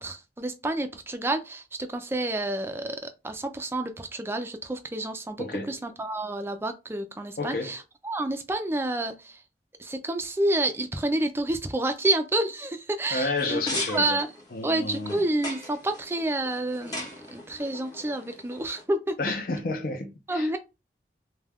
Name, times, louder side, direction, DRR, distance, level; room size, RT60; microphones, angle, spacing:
voice 1, 0.0-9.4 9.8-13.6 13.9-14.3 14.6-19.1 20.3-20.6, right 1 dB, 15° right, 0.3 m, -29 dB
voice 2, 5.4-5.8 7.4-7.8 13.1-14.2 14.5-15.2 19.2-20.6, left 3 dB, 55° left, 0.5 m, -31 dB
sound 1, 13.3-18.8, left 1 dB, 25° left, 0.8 m, -39 dB
2.3 x 2.2 x 3.3 m
head